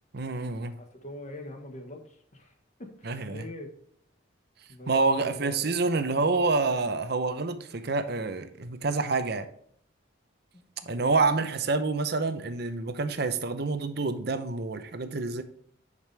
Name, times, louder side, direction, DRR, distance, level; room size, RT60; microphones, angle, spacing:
voice 1, 0.1-0.7 3.1-3.4 4.9-9.5 10.9-15.4, right 3 dB, 55° right, 9 dB, 0.7 m, -27 dB
voice 2, 0.8-3.7 4.7-5.5 10.5-11.2, left 1 dB, 35° left, 4 dB, 1.3 m, -44 dB
9.5 x 5.2 x 3.4 m, 0.65 s
head